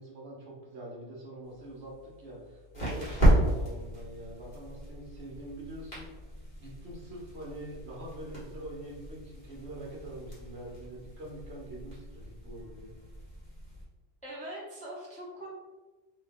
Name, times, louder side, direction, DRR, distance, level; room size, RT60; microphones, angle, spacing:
voice 1, 0.0-12.9, right 1 dB, 60° right, -4 dB, 1.2 m, -45 dB
sound 1, 1.4-13.8, right 1 dB, 35° left, 1.5 m, -33 dB
voice 2, 14.2-15.5, right 1 dB, 10° left, -7 dB, 0.6 m, -42 dB
3.0 x 2.8 x 3.4 m, 1.2 s
omnidirectional pair, 1.3 m